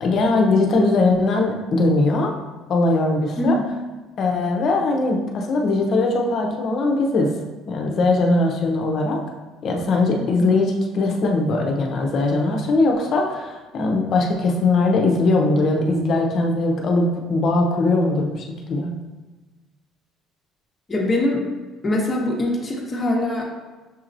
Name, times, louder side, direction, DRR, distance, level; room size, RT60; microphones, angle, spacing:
voice 1, 0.0-2.3 2.7-3.5 4.2-7.3 7.7-9.2 9.6-18.9, left 2 dB, 55° left, 1 dB, 0.8 m, -20 dB
voice 2, 10.2-10.5 20.9-21.4 21.8-23.4, left 1 dB, 25° left, -2 dB, 1.1 m, -23 dB
6.8 x 2.9 x 2.6 m, 1.3 s
cardioid pair, 100°, 0 cm